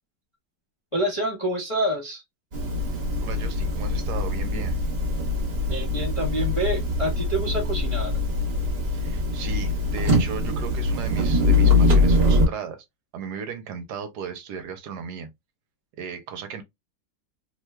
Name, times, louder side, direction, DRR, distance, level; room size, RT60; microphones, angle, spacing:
voice 1, 0.9-2.2 5.7-8.1, right 1 dB, 30° left, 0.5 m, -27 dB
sound 1, 2.5-12.5, left 2 dB, 40° right, 1.0 m, -23 dB
voice 2, 3.2-4.8 8.9-12.8 13.1-15.3 16.0-16.6, right 6 dB, 75° right, 1.1 m, -36 dB
3.1 x 2.2 x 3.1 m
omnidirectional pair, 1.9 m